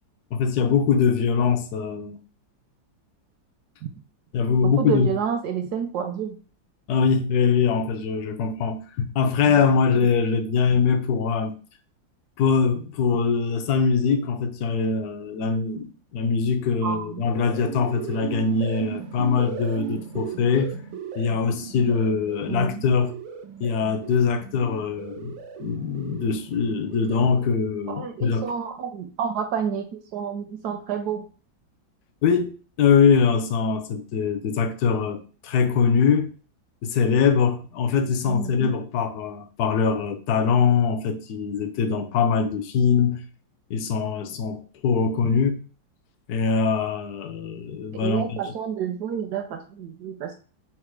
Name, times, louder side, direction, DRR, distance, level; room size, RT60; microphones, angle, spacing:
voice 1, 0.3-2.2 4.3-5.1 6.9-11.6 12.4-20.8 21.1-23.2 23.6-28.5 32.2-36.3 36.8-43.2 43.7-45.6 46.3-48.4, left 5 dB, 70° left, 1.0 m, -23 dB
voice 2, 4.6-6.4 9.5-9.6 16.8-17.2 22.5-22.8 27.9-31.3 38.3-38.7 47.9-50.3, right 7 dB, 75° right, 1.0 m, -29 dB
sound 1, 17.1-27.6, right 7 dB, 90° right, 1.4 m, -37 dB
4.3 x 2.1 x 4.6 m
omnidirectional pair, 2.0 m